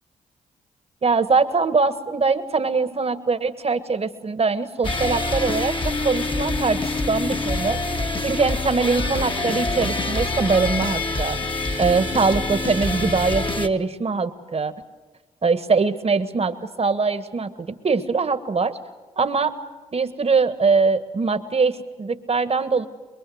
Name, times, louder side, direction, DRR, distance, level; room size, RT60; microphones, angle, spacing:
voice 1, 1.0-7.8 8.2-11.4 11.8-14.7 15.4-18.8 19.2-19.6 19.9-22.9, right 4 dB, 40° right, 11 dB, 1.6 m, -22 dB
sound 1, 4.8-13.7, left 2 dB, 30° left, 1.7 m, -25 dB
24.0 x 22.5 x 8.0 m, 1.3 s
supercardioid pair, 45°, 16 cm